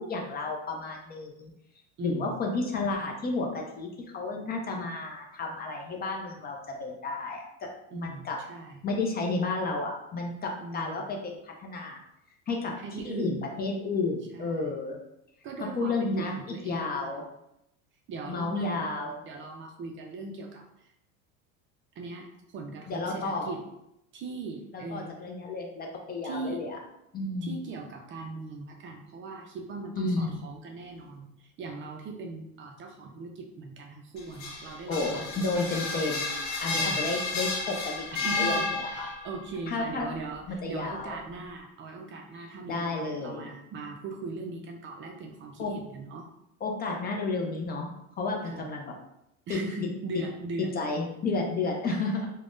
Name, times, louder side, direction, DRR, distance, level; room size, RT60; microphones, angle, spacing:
voice 1, 0.0-1.5 2.0-8.4 8.8-12.0 12.5-12.7 13.0-15.0 15.6-16.3 16.6-17.2 18.3-19.2 22.9-23.5 24.7-26.8 27.1-27.6 29.9-30.4 34.9-39.1 39.7-40.1 40.5-41.2 42.4-43.5 45.6-45.7 46.6-47.9 48.2-48.9 49.5-49.6 50.7-52.3, left 3 dB, 25° left, 1 dB, 0.4 m, -32 dB
voice 2, 2.0-2.4 7.9-8.8 10.6-11.1 12.8-13.5 14.3-14.8 15.4-17.2 18.1-20.9 22.0-23.6 24.1-25.1 26.2-26.6 27.4-36.0 36.7-37.0 38.2-46.3 48.4-48.8 49.5-50.7 51.2-51.3 51.9-52.0, right 3 dB, 35° right, 2 dB, 0.4 m, -40 dB
sound 1, 34.2-39.3, left 3 dB, 65° left, 0.9 m, -31 dB
3.4 x 2.1 x 2.5 m, 0.83 s
supercardioid pair, 110°, 36 cm